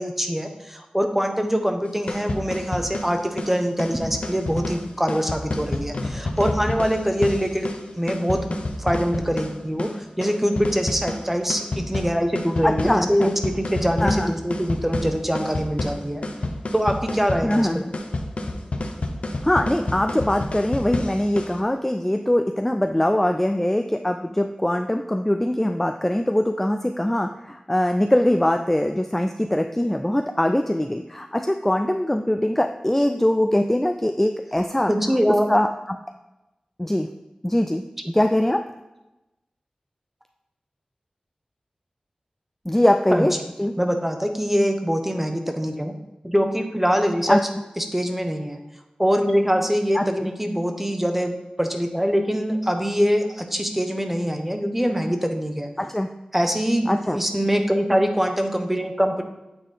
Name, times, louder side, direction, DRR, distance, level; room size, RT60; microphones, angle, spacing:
voice 1, 0.0-16.3 16.7-17.8 34.9-35.5 43.1-43.3 43.8-45.9 46.2-47.4 47.8-48.6 49.0-55.7 56.3-59.2, equal, 10° right, 5 dB, 0.8 m, -23 dB
sound 1, 1.9-21.6, left 2 dB, 65° left, 0.7 m, -30 dB
voice 2, 12.6-13.3 14.0-14.3 17.4-17.9 19.4-34.9 35.3-36.0 36.8-37.1 37.4-37.8 38.1-38.6 42.7-43.7 47.3-47.4 49.9-50.3 55.8-56.1 56.9-57.2, left 1 dB, 10° left, 6 dB, 0.3 m, -22 dB
8.8 x 3.9 x 3.3 m, 1.0 s
wide cardioid pair, 60°, 2 cm